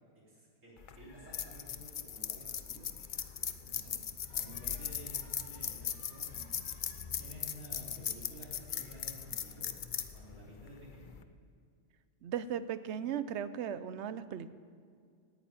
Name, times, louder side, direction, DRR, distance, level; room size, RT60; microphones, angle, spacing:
voice 1, 0.3-2.9 3.6-4.0 4.3-6.6 7.0-9.7 10.1-11.1, right 1 dB, 85° right, -5 dB, 4.1 m, -53 dB
sound 1, 0.8-11.2, left 8 dB, 50° left, 0.7 m, -39 dB
voice 2, 12.2-14.5, right 9 dB, 70° right, 14 dB, 0.9 m, -37 dB
10.5 x 9.1 x 8.8 m, 2.2 s
omnidirectional pair, 1.3 m